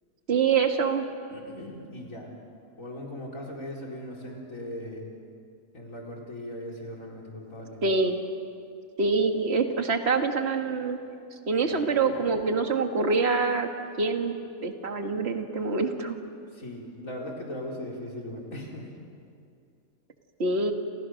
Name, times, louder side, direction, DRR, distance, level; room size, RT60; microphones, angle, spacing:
voice 1, 0.3-1.1 7.8-8.2 9.0-11.0 11.5-13.7 14.0-14.3 14.6-16.2 20.4-20.7, right 4 dB, 50° right, 4 dB, 2.0 m, -25 dB
voice 2, 1.3-2.3 2.8-5.1 5.7-7.8 11.7-12.3 16.5-18.9, left 1 dB, 75° left, -2 dB, 4.9 m, -39 dB
29.0 x 28.0 x 6.5 m, 2.5 s
omnidirectional pair, 1.4 m